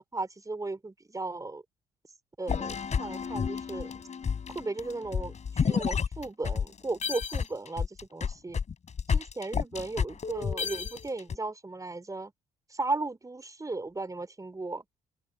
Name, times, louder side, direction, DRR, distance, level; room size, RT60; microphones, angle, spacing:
voice 1, 0.0-1.6 2.4-3.9 4.5-8.6 9.1-12.3 12.7-14.8, right 3 dB, 20° right, 4.6 m, -36 dB
sound 1, 2.5-6.7 7.0-11.4, left 6 dB, 40° left, 4.8 m, -30 dB
open air
figure-of-eight pair, 45°, 19 cm